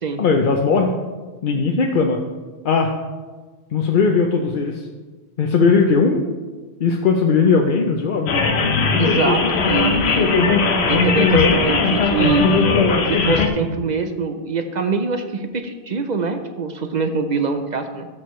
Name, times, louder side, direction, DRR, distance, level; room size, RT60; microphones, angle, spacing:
voice 1, 0.2-0.9 1.4-2.2 2.6-2.9 3.7-4.8 5.4-6.2 6.8-8.3 11.3-11.6, left 5 dB, 55° left, 2 dB, 0.8 m, -18 dB
sound 1, 8.3-13.5, left 4 dB, 80° left, 1.1 m, -18 dB
voice 2, 9.0-10.6 10.9-12.7 13.1-18.1, right 4 dB, 50° right, 7 dB, 0.6 m, -24 dB
13.0 x 6.4 x 3.1 m, 1.3 s
omnidirectional pair, 1.1 m